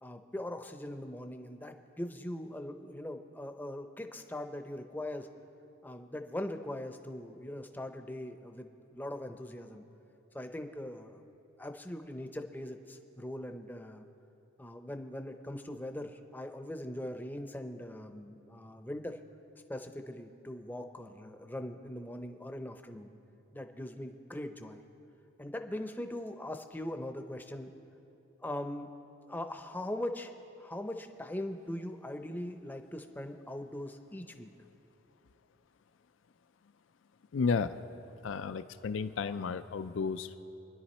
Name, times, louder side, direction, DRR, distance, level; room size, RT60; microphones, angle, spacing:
voice 1, 0.0-5.3 5.8-9.8 10.3-11.2 11.6-14.1 14.6-19.2 19.7-23.1 23.5-24.8 25.4-27.7 28.4-28.9 29.3-34.5, left 1 dB, 10° left, 6 dB, 0.6 m, -41 dB
voice 2, 37.3-37.8 38.2-40.4, left 5 dB, 70° left, 12 dB, 0.4 m, -32 dB
25.0 x 10.5 x 4.3 m, 3.0 s
head